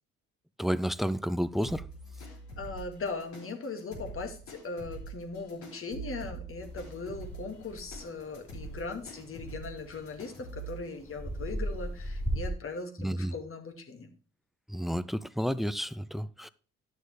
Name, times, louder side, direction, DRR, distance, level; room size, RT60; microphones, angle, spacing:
voice 1, 0.6-1.9 13.0-13.3 14.7-16.5, equal, ahead, 0.5 m, -31 dB
sound 1, 1.6-10.8, right 3 dB, 70° left, 4.0 m, -45 dB
voice 2, 2.6-14.1, left 3 dB, 45° left, 2.1 m, -39 dB
sound 2, 6.6-12.5, equal, 20° left, 3.1 m, -39 dB
11.0 x 6.5 x 3.3 m
hypercardioid pair, 60°, 30 cm